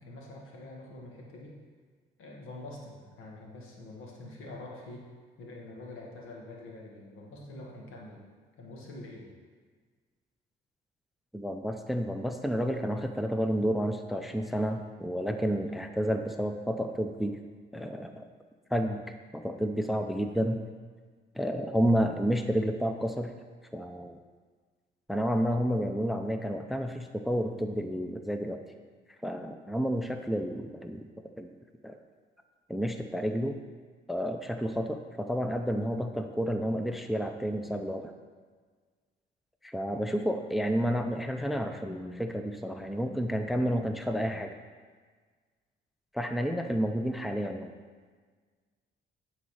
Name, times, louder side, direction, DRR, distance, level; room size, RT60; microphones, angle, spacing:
voice 1, 0.0-1.6 2.2-5.1 5.4-8.2 8.6-9.3, left 2 dB, 85° left, -2 dB, 1.6 m, -45 dB
voice 2, 11.3-17.4 17.7-18.2 18.7-19.0 19.3-20.6 21.3-23.3 23.7-24.2 25.1-28.6 29.2-31.1 31.4-31.5 31.8-32.0 32.7-33.6 34.1-38.1 39.6-44.6 46.1-47.7, equal, ahead, 6 dB, 0.5 m, -30 dB
9.9 x 4.1 x 4.8 m, 1.5 s
cardioid pair, 90°, 20 cm